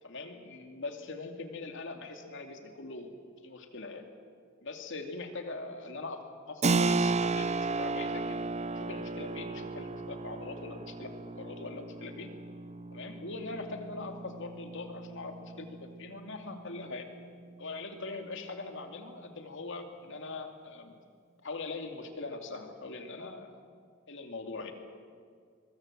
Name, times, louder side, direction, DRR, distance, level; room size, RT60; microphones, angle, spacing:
voice 1, 0.0-3.1 3.4-4.0 4.6-6.2 6.5-8.4 8.7-12.3 12.9-17.1 17.6-20.9 21.4-23.5 24.1-24.7, left 3 dB, 65° left, 4 dB, 2.5 m, -41 dB
Keyboard (musical), 6.6-17.0, right 3 dB, 35° right, 0.6 m, -34 dB
22.5 x 22.0 x 7.6 m, 2.1 s
head